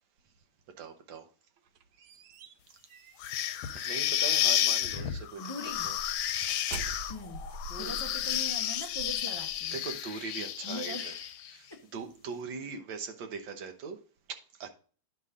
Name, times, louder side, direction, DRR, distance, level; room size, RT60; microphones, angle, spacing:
voice 1, 0.8-1.3 3.7-5.4 5.8-6.0 7.7-8.2 9.7-11.1 11.5-14.0 14.3-14.7, right 5 dB, 65° right, 1.7 m, -41 dB
sound 1, 1.6-4.5 5.0-5.2 5.7-9.9, right 3 dB, 80° right, 1.6 m, -46 dB
sound 2, 3.2-11.5, left 11 dB, 75° left, 1.4 m, -31 dB
voice 2, 5.4-5.9 7.1-7.4 7.8-9.8 10.6-11.4 11.7-11.8, left 1 dB, 40° left, 0.3 m, -41 dB
10.0 x 5.5 x 3.6 m
omnidirectional pair, 2.3 m